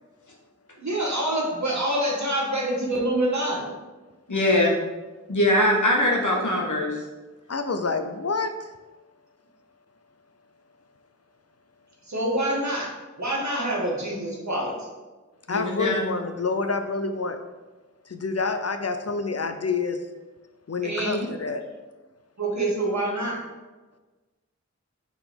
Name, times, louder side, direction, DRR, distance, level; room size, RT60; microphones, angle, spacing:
voice 1, 0.8-3.7 12.1-12.9 13.2-14.9 20.8-21.3 22.4-23.4, right 1 dB, 70° right, -3 dB, 1.5 m, -26 dB
voice 2, 4.3-4.8 5.3-7.0 15.5-16.1, left 1 dB, 85° left, -2 dB, 1.3 m, -22 dB
voice 3, 7.5-8.7 15.5-17.4 18.1-20.0 20.7-21.6, left 4 dB, 55° left, 7 dB, 0.5 m, -28 dB
4.9 x 3.9 x 5.1 m, 1.2 s
wide cardioid pair, 40°, 29 cm